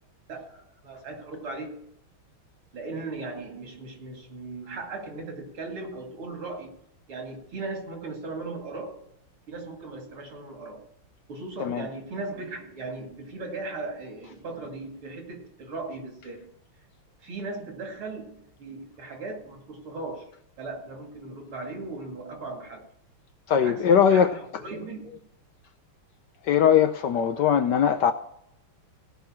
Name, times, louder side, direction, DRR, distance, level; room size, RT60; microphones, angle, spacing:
voice 1, 0.3-1.8 2.7-6.7 7.1-9.1 9.5-10.8 11.3-16.5 17.2-20.3 20.6-22.9 23.6-25.2, right 3 dB, 75° right, 3.3 m, -37 dB
voice 2, 23.5-24.3 26.4-28.1, left 8 dB, 70° left, 1.1 m, -20 dB
17.0 x 5.8 x 7.4 m
omnidirectional pair, 2.3 m